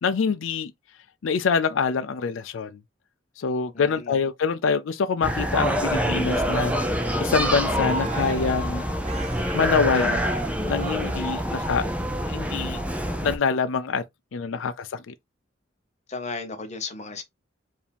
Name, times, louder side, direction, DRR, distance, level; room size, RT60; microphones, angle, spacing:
voice 1, 0.0-0.7 1.2-2.8 3.4-8.8 9.5-10.2 10.7-11.9 12.3-12.8 13.2-14.0 14.3-15.1, left 5 dB, 85° left, 0.4 m, -25 dB
voice 2, 3.7-4.1 16.1-17.2, left 4 dB, 35° left, 1.1 m, -35 dB
sound 1, 5.2-13.4, equal, 5° right, 0.6 m, -26 dB
Cheering, 6.4-11.6 12.1-12.4, right 3 dB, 35° right, 1.0 m, -37 dB
4.7 x 2.7 x 3.4 m
head